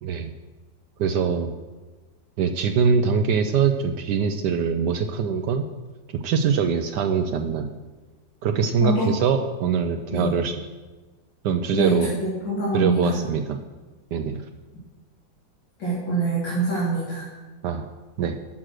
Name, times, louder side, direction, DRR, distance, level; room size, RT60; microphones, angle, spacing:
voice 1, 0.0-0.3 1.0-1.5 2.4-5.7 6.1-7.7 8.4-10.6 11.4-12.1 12.7-13.6 14.1-14.4 17.6-17.8 18.2-18.4, right 6 dB, 75° right, 6 dB, 1.2 m, -23 dB
voice 2, 8.8-9.2 10.1-10.3 11.7-12.1 12.4-13.2 15.8-17.2, right 3 dB, 80° left, -8 dB, 3.6 m, -24 dB
11.5 x 6.1 x 6.4 m, 1.3 s
omnidirectional pair, 2.0 m